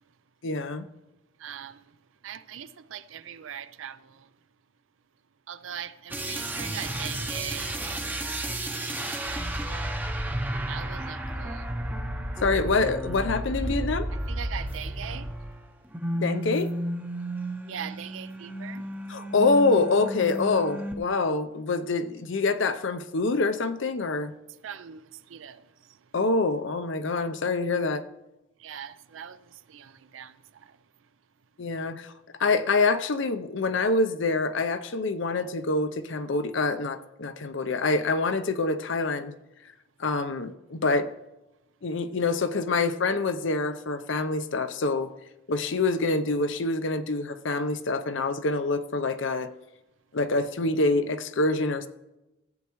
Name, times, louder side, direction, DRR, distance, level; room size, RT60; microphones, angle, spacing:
voice 1, 0.4-0.9 12.4-14.1 16.1-16.7 19.1-24.3 26.1-28.0 31.6-32.1 32.4-39.3 40.0-41.1 41.8-45.1 45.5-49.5 50.1-51.9, left 3 dB, 65° left, 0.7 m, -26 dB
voice 2, 1.4-1.8 2.2-4.3 5.5-9.3 9.7-10.0 10.7-11.7 14.3-15.3 17.6-18.9 24.6-25.6 28.6-30.7, right 9 dB, 70° right, 0.5 m, -41 dB
sound 1, 6.1-15.6 15.9-20.9, right 1 dB, 10° right, 0.7 m, -32 dB
14.5 x 8.5 x 3.1 m
head